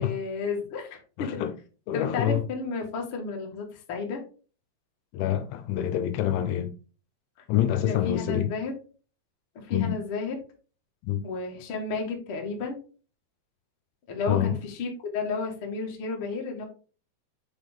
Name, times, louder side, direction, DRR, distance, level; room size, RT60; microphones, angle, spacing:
voice 1, 0.0-1.4 1.9-4.2 7.8-8.7 9.5-10.4 11.2-12.8 14.1-16.6, left 4 dB, 65° left, 1.3 m, -32 dB
voice 2, 1.2-1.5 1.9-2.4 5.1-6.7 7.5-8.5 9.7-10.0 11.0-11.2 14.3-14.6, left 11 dB, 80° left, 2.9 m, -26 dB
6.4 x 5.4 x 3.6 m
omnidirectional pair, 5.3 m